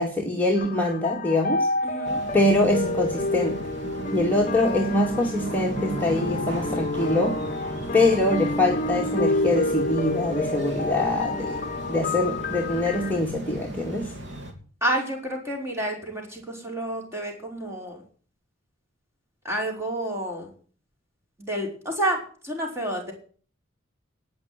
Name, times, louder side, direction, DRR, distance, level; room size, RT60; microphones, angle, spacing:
voice 1, 0.0-1.7 2.3-3.6 4.1-7.4 7.9-11.6 11.9-14.1, left 2 dB, 10° left, -2 dB, 2.2 m, -24 dB
sound 1, 0.6-13.2, left 2 dB, 40° left, 0.9 m, -29 dB
voice 2, 1.8-2.2 7.8-8.0 14.8-18.0 19.4-20.5 21.4-23.1, right 1 dB, 15° right, 0 dB, 5.2 m, -29 dB
sound 2, 2.0-14.5, right 1 dB, 70° right, 3.3 m, -37 dB
18.5 x 6.3 x 9.0 m, 0.43 s
head